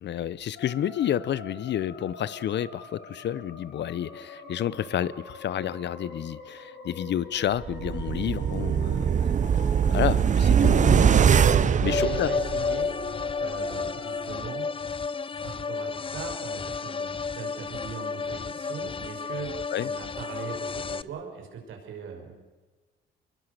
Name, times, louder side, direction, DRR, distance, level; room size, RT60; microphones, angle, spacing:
voice 1, 0.0-9.1 9.9-12.3 19.7-19.9, left 10 dB, 60° left, 19 dB, 0.8 m, -30 dB
sound 1, 0.5-14.2, left 3 dB, 80° left, 6.0 m, -43 dB
sound 2, 7.6-12.9 13.2-13.3, right 8 dB, 40° right, 0.6 m, -22 dB
voice 2, 11.5-14.7 15.4-22.3, right 6 dB, 80° right, 2 dB, 5.7 m, -40 dB
sound 3, 11.8-21.0, left 5 dB, 25° left, 0.6 m, -32 dB
24.5 x 21.5 x 6.7 m, 1.3 s
cardioid pair, 90°, 20 cm